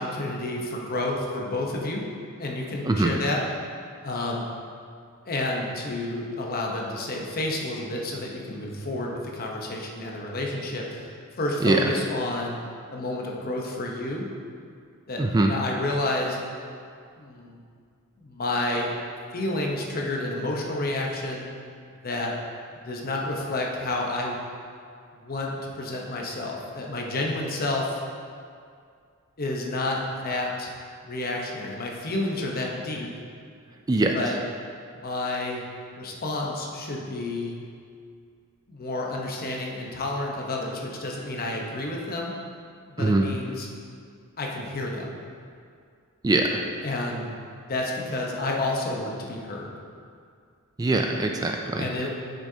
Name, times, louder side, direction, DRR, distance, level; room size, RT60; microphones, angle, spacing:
voice 1, 0.0-2.1 2.4-3.5 4.0-4.5 5.3-12.6 12.9-14.3 15.1-16.4 17.2-17.6 18.2-18.9 19.3-21.4 22.0-22.3 22.9-24.4 25.1-28.0 29.4-30.7 31.0-33.1 34.1-34.4 34.9-35.6 35.9-37.6 38.7-42.3 42.9-43.7 44.4-45.2 46.8-49.8 51.8-52.1, left 2 dB, 45° left, -1 dB, 0.9 m, -30 dB
voice 2, 15.2-15.5 33.9-34.1 43.0-43.2 46.2-46.6 50.8-51.9, right 2 dB, 20° right, 2 dB, 0.3 m, -22 dB
8.5 x 6.3 x 2.8 m, 2.3 s
head